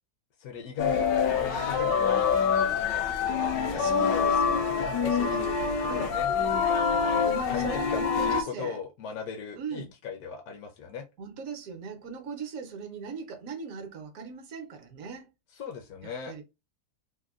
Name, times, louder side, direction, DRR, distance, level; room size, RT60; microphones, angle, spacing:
voice 1, 0.4-2.2 2.8-3.0 3.5-4.3 4.6-6.3 7.5-11.1 15.5-16.3, left 6 dB, 70° left, 0.9 m, -38 dB
sound 1, 0.8-8.4, left 6 dB, 85° left, 1.2 m, -26 dB
voice 2, 3.7-4.7 5.1-6.1 7.2-8.8 9.6-9.9 11.2-15.3 16.0-16.4, right 5 dB, 60° right, 1.0 m, -39 dB
3.4 x 2.2 x 2.3 m
omnidirectional pair, 1.8 m